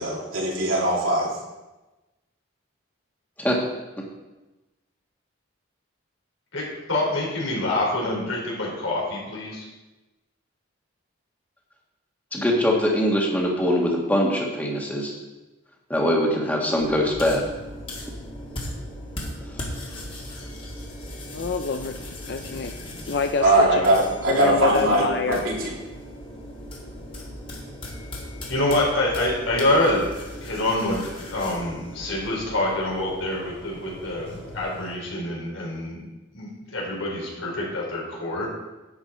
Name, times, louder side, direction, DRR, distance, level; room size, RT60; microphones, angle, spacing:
voice 1, 0.0-1.3 23.4-25.7, right 1 dB, 85° right, -4 dB, 3.1 m, -21 dB
voice 2, 6.5-9.6 28.5-30.0 30.4-31.0 31.3-36.0 36.3-38.5, left 1 dB, 80° left, -3 dB, 4.1 m, -26 dB
voice 3, 12.3-15.1 15.9-17.4, equal, 10° left, -1 dB, 1.7 m, -22 dB
sound 1, 16.8-34.9, left 1 dB, 25° left, 1.9 m, -38 dB
voice 4, 21.3-22.8 23.1-23.8 24.3-25.4, left 5 dB, 55° left, 6 dB, 0.4 m, -26 dB
11.0 x 8.6 x 4.4 m, 1.1 s
head